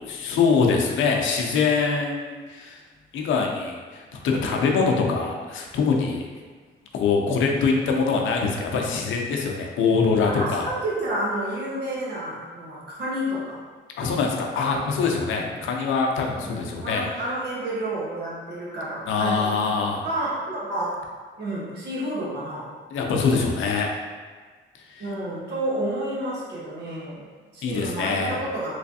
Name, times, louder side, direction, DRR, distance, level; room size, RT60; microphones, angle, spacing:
voice 1, 0.0-2.8 3.1-6.2 6.9-10.7 14.0-17.1 19.1-20.0 22.9-23.9 24.9-25.0 27.6-28.4, left 5 dB, 80° left, 1 dB, 0.5 m, -23 dB
voice 2, 10.2-13.6 14.6-14.8 15.3-15.5 16.4-19.5 19.8-21.0 21.4-22.7 25.0-28.8, right 1 dB, 60° right, -6 dB, 1.2 m, -30 dB
3.2 x 3.2 x 2.6 m, 1.4 s
cardioid pair, 90°, 20 cm